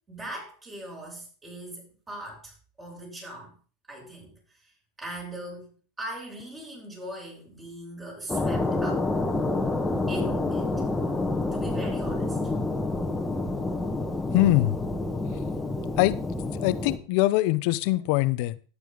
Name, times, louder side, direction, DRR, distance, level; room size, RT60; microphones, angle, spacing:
voice 1, 0.1-3.5 3.9-4.7 5.0-9.1 10.1-10.9 11.5-12.5, right 1 dB, 20° right, 7.2 m, -40 dB
sound 1, 8.3-17.0, left 2 dB, 10° left, 1.6 m, -28 dB
voice 2, 14.3-14.8 16.0-16.2 16.6-18.6, left 17 dB, 60° left, 0.7 m, -22 dB
11.5 x 9.7 x 3.9 m
hypercardioid pair, 100°, 0 cm